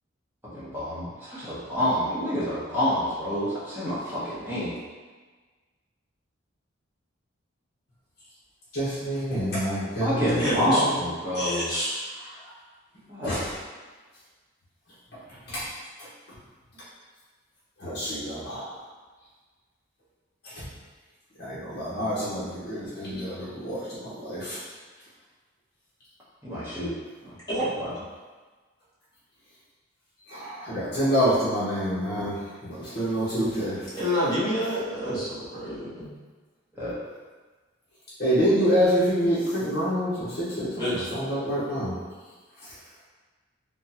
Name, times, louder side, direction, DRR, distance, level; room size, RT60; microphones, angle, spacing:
voice 1, 0.5-4.8 10.0-11.7 13.1-13.4 26.4-26.9 27.2-27.4 27.8-27.9 36.7-37.0, equal, 10° right, -9 dB, 0.8 m, -28 dB
voice 2, 8.7-10.9 13.2-13.4 15.5-15.6 17.8-18.7 20.5-20.7 21.4-24.6 30.3-32.4 32.6-33.8 38.2-41.9, equal, 50° left, -10 dB, 0.9 m, -27 dB
voice 3, 10.3-10.8 11.3-11.9 27.5-27.6 33.9-36.1 40.8-41.1, equal, 20° left, -12 dB, 1.1 m, -28 dB
3.5 x 2.1 x 2.7 m, 1.4 s
head